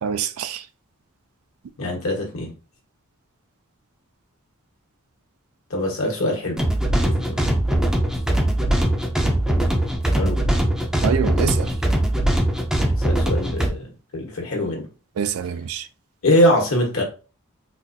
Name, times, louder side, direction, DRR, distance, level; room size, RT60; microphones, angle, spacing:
voice 1, 0.0-0.6 11.0-11.7 15.2-15.9, right 7 dB, 75° right, 0.4 m, -25 dB
voice 2, 1.8-2.5 5.7-6.6 7.0-7.5 10.1-10.4 13.0-14.8 16.2-17.0, left 1 dB, 70° left, 1.2 m, -22 dB
sound 1, 6.6-13.7, right 1 dB, 5° right, 0.5 m, -21 dB
4.0 x 2.4 x 2.6 m
head